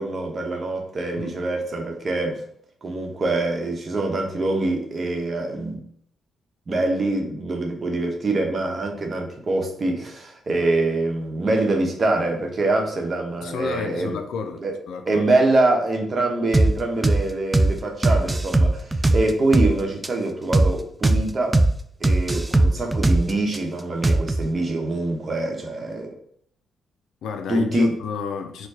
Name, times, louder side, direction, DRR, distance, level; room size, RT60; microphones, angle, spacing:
voice 1, 0.0-2.4 2.8-5.8 6.7-14.2 14.6-14.8 15.1-21.6 22.0-26.1 27.5-28.0, right 2 dB, 45° right, 0.9 m, -24 dB
voice 2, 13.4-15.3 27.2-28.7, left 6 dB, 80° left, 0.4 m, -31 dB
sound 1, 16.5-16.7 17.0-17.2 17.5-17.7 18.0-19.7 20.0-20.1 20.5-20.7 21.0-21.2 21.5-21.7 22.0-23.6 24.0-24.5, right 2 dB, 20° right, 0.3 m, -18 dB
4.5 x 2.2 x 2.7 m
supercardioid pair, 60°, 0 cm